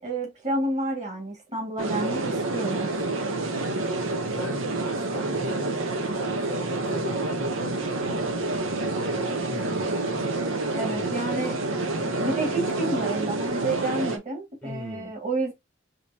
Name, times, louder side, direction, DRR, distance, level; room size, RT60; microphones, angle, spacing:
voice 1, 0.0-2.9 10.7-15.5, right 2 dB, 35° right, 2.0 m, -30 dB
sound 1, 1.8-14.2, right 2 dB, 80° right, 0.8 m, -28 dB
voice 2, 4.3-10.3 10.9-11.7 14.6-15.1, left 2 dB, 5° left, 0.8 m, -40 dB
5.0 x 2.8 x 2.8 m
head